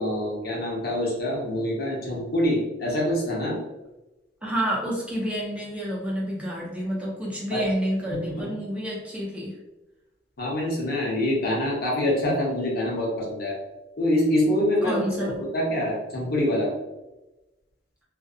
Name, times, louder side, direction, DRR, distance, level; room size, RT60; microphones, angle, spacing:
voice 1, 0.0-3.6 7.5-7.7 8.1-8.5 10.4-13.6 14.0-16.7, left 1 dB, 60° left, -4 dB, 0.8 m, -25 dB
voice 2, 4.4-9.5 14.8-15.4, equal, 5° right, -5 dB, 0.5 m, -29 dB
2.5 x 2.1 x 2.4 m, 1.0 s
head